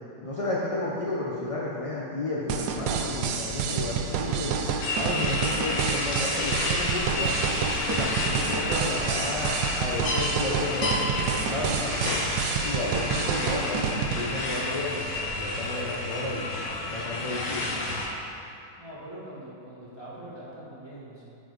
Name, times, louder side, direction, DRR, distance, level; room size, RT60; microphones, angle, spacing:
voice 1, 0.2-4.6 4.9-7.4 7.7-12.2 12.6-16.4 16.8-18.0, left 2 dB, 35° left, -5 dB, 0.5 m, -32 dB
sound 1, 2.5-14.2, right 6 dB, 90° right, 1.2 m, -29 dB
sound 2, 4.8-18.1, left 2 dB, 70° left, 1.5 m, -30 dB
Frog, 6.4-13.1, right 1 dB, 70° right, 1.7 m, -42 dB
voice 2, 18.8-21.2, right 1 dB, 15° right, -8 dB, 1.6 m, -43 dB
9.6 x 4.8 x 4.0 m, 2.6 s
omnidirectional pair, 1.7 m